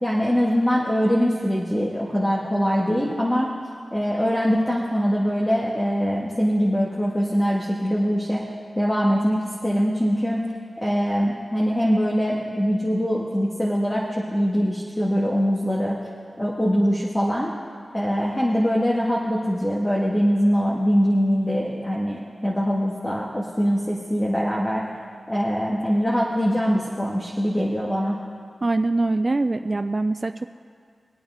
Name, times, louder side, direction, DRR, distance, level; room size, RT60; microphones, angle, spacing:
voice 1, 0.0-3.5 3.9-8.4 8.8-10.5 10.8-16.0 16.4-17.5 17.9-24.8 25.3-28.2, equal, 15° left, -5 dB, 2.0 m, -22 dB
voice 2, 28.6-30.5, right 2 dB, 40° right, 8 dB, 0.4 m, -23 dB
23.0 x 8.8 x 3.7 m, 2.1 s
cardioid pair, 45°, 0 cm